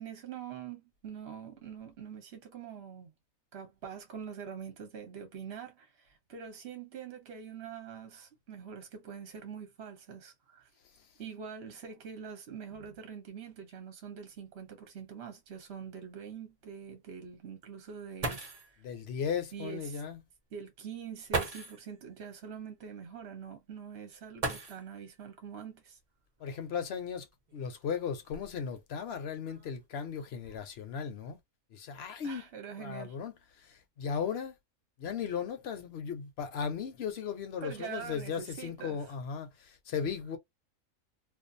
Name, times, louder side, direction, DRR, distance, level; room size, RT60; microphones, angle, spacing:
voice 1, 0.0-3.1 3.5-10.7 11.2-18.7 19.5-20.0 20.5-26.0 32.2-33.2 37.6-39.0, right 7 dB, 55° right, 1.0 m, -44 dB
sound 1, 14.3-14.4 14.8-14.9 15.5-15.6 17.9-18.0 18.2-18.8 20.0-20.1 21.3-21.9 24.4-25.1 26.5-26.6 27.3-28.8 29.5-29.8 30.2-30.6, right 3 dB, 35° right, 0.7 m, -37 dB
voice 2, 18.8-20.2 26.4-27.3 27.5-31.4 31.7-32.5 32.8-34.6 35.0-40.4, left 7 dB, 60° left, 0.7 m, -36 dB
2.5 x 2.3 x 2.6 m
omnidirectional pair, 1.5 m